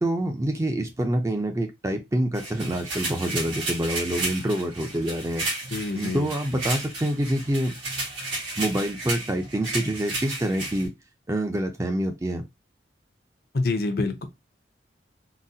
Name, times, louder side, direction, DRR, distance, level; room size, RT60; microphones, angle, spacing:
voice 1, 0.0-5.4 5.9-7.7 8.6-10.9 11.3-12.4, right 1 dB, 15° right, 0.4 m, -26 dB
sound 1, 2.3-10.9, right 2 dB, 80° right, 1.8 m, -33 dB
voice 2, 5.7-6.3 13.5-14.3, left 3 dB, 55° left, 0.5 m, -26 dB
3.9 x 2.1 x 2.7 m
head